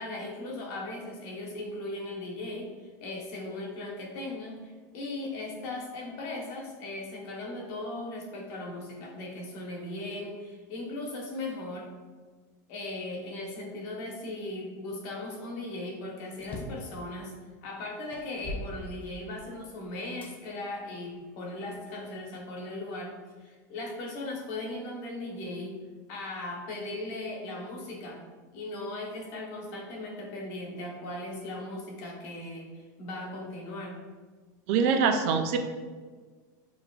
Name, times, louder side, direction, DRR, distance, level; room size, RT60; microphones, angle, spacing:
voice 1, 0.0-2.7 3.0-11.9 12.7-17.3 17.6-25.8 26.1-28.2 28.5-34.0, left 2 dB, 50° left, 0 dB, 1.1 m, -38 dB
sound 1, 16.3-16.9 17.6-17.7 18.1-19.5 20.2-20.3 21.1-22.1, left 1 dB, 15° left, 0.4 m, -41 dB
voice 2, 34.7-35.6, right 6 dB, 50° right, 6 dB, 0.4 m, -24 dB
6.9 x 3.2 x 2.4 m, 1.4 s
supercardioid pair, 170°, 10 cm